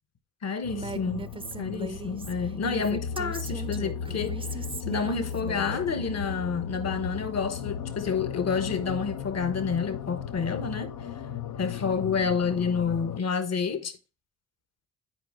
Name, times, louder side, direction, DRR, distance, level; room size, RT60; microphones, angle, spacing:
voice 1, 0.4-4.4 4.9-10.9 11.6-13.9, left 5 dB, 50° left, 1.2 m, -29 dB
sound 1, 0.6-13.2, left 7 dB, 65° left, 0.8 m, -36 dB
sound 2, 0.7-13.0, left 2 dB, 90° left, 1.1 m, -52 dB
Female speech woman speaking, 0.7-5.8, right 4 dB, 15° right, 0.6 m, -39 dB
8.9 x 5.0 x 3.6 m
hypercardioid pair, 45°, 34 cm